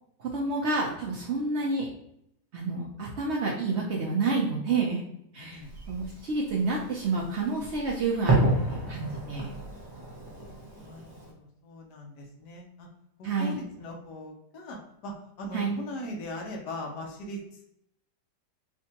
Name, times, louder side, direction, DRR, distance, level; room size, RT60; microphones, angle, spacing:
voice 1, 0.2-1.9 2.5-5.0 5.3-5.6 5.9-9.5 13.2-13.5 15.5-15.8, right 3 dB, 75° right, -2 dB, 0.6 m, -29 dB
voice 2, 5.4-5.7 10.1-10.2 10.8-12.9 13.2-14.8 15.0-17.6, left 1 dB, 70° left, 1 dB, 1.3 m, -40 dB
Fireworks, 5.6-11.3, right 2 dB, 30° right, 0.4 m, -31 dB
4.6 x 2.2 x 2.8 m, 0.76 s
omnidirectional pair, 1.9 m